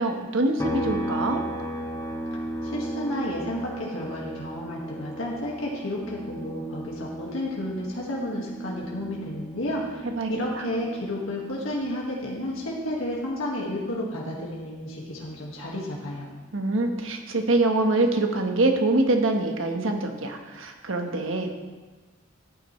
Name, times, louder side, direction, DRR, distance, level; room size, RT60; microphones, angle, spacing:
voice 1, 0.0-1.4 10.2-10.3 10.5-10.6 16.5-21.5, right 2 dB, 80° right, 4 dB, 1.2 m, -24 dB
sound 1, 0.6-14.1 14.5-16.7, equal, 15° left, 1.0 m, -36 dB
voice 2, 2.6-16.3, left 1 dB, 85° left, -3 dB, 1.8 m, -32 dB
13.5 x 9.4 x 3.2 m, 1.3 s
head